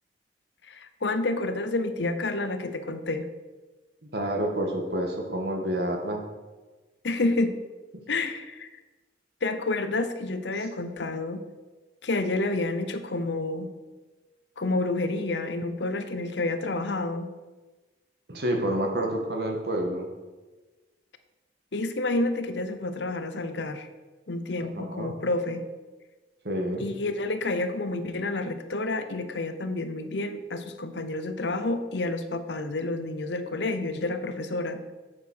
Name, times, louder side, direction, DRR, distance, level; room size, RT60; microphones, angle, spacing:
voice 1, 0.6-3.3 7.0-7.6 8.1-8.7 9.4-11.4 12.0-13.7 14.6-17.3 21.7-23.9 24.3-25.6 26.8-34.9, left 2 dB, 75° left, 10 dB, 0.8 m, -29 dB
voice 2, 4.0-6.2 18.3-20.1 24.6-25.1 26.4-26.9, right 1 dB, 60° right, 2 dB, 1.7 m, -29 dB
8.5 x 6.9 x 6.1 m, 1.2 s
head